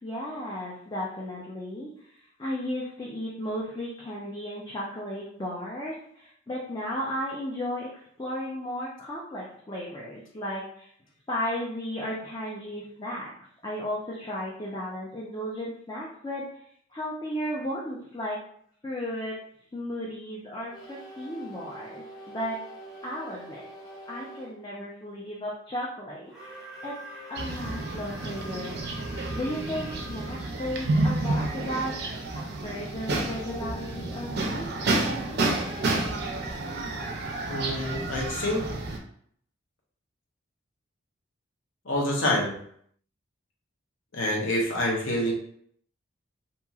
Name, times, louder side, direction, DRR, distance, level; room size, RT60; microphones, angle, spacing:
voice 1, 0.0-10.9 11.3-13.3 13.6-16.5 16.9-18.4 18.8-19.4 19.7-22.6 23.0-23.6 24.1-26.3 26.8-28.8 29.3-31.9 32.6-34.7, equal, 20° left, -6 dB, 0.5 m, -34 dB
sound 1, 20.7-24.5 26.2-30.4 32.7-37.5, right 1 dB, ahead, 1.1 m, -45 dB
sound 2, 27.4-39.0, right 2 dB, 50° right, 0.4 m, -30 dB
voice 2, 37.5-38.6 41.8-42.5 44.1-45.3, left 1 dB, 75° left, -2 dB, 0.9 m, -27 dB
2.9 x 2.7 x 2.3 m, 0.64 s
head